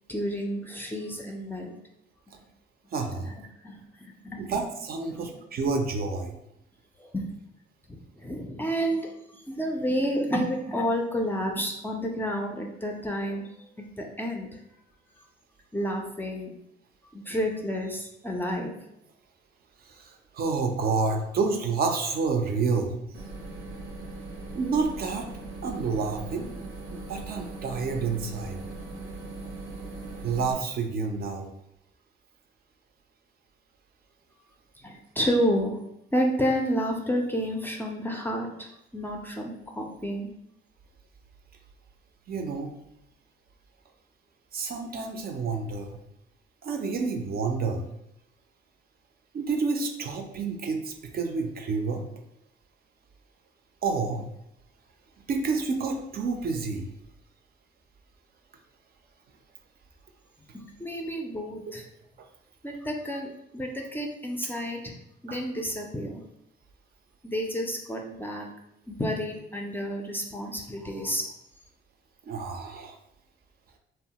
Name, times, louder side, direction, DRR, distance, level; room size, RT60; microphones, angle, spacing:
voice 1, 0.1-1.7 3.3-3.4 3.6-3.8 4.2-4.5 7.0-7.4 7.9-9.0 9.3-13.7 14.0-14.6 15.7-16.5 17.1-18.8 34.8-35.8 36.1-40.3 60.5-61.8 62.6-64.9 65.2-66.2 67.2-68.5 68.9-71.3, equal, 10° left, 1 dB, 0.4 m, -30 dB
voice 2, 2.9-3.3 4.4-6.3 19.8-22.9 24.5-25.3 25.6-26.5 26.9-28.6 30.2-31.5 42.3-42.7 44.5-46.0 46.6-47.9 49.3-52.0 53.8-54.3 55.3-56.9 65.3-65.4 72.3-73.0, right 4 dB, 50° right, 3 dB, 0.4 m, -29 dB
sound 1, 23.1-30.5, right 2 dB, 90° right, 0.7 m, -39 dB
2.9 x 2.0 x 2.8 m, 0.79 s
cardioid pair, 90°, 20 cm